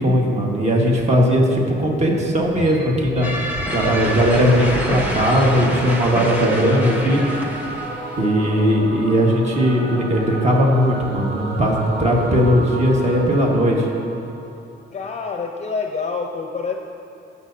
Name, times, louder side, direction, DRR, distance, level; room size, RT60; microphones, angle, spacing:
voice 1, 0.0-3.3 3.7-7.2 8.2-13.9, equal, 35° right, -1 dB, 1.5 m, -18 dB
sound 1, 2.4-5.7 6.2-6.7 6.9-7.2 7.5-7.8 8.4-8.7, equal, 80° right, 2.0 m, -32 dB
sound 2, 3.2-8.3, equal, 10° right, 1.2 m, -28 dB
Singing / Musical instrument, 3.5-14.8, right 2 dB, 65° right, 1.5 m, -33 dB
voice 2, 14.9-16.7, left 4 dB, 35° left, 2 dB, 0.6 m, -27 dB
18.5 x 7.0 x 2.7 m, 2.5 s
cardioid pair, 90°, 20 cm